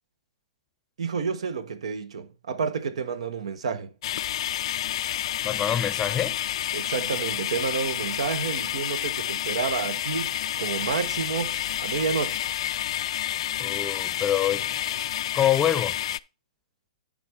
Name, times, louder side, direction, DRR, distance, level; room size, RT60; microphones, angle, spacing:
voice 1, 1.0-3.9 6.7-12.4, right 5 dB, 75° right, 1.0 m, -30 dB
sound 1, 4.0-16.2, left 12 dB, 65° left, 0.3 m, -29 dB
voice 2, 5.4-6.3 13.6-14.7 15.3-16.0, left 10 dB, 20° left, 0.6 m, -25 dB
11.0 x 3.9 x 4.4 m
hypercardioid pair, 130°, 3 cm